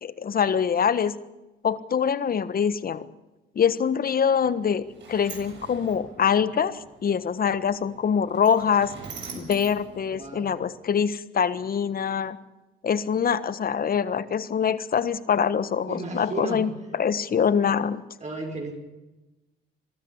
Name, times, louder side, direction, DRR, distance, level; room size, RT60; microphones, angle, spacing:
voice 1, 0.0-1.1 1.6-3.0 3.5-8.9 9.3-12.4 12.8-18.0, left 7 dB, 45° left, 15 dB, 1.4 m, -24 dB
Sliding door, 4.4-10.8, right 4 dB, 65° right, 7.0 m, -44 dB
voice 2, 10.1-10.5 15.9-16.6 18.2-18.7, right 3 dB, 35° right, 2 dB, 5.8 m, -33 dB
22.5 x 13.5 x 10.0 m, 1.0 s
cardioid pair, 90°, 20 cm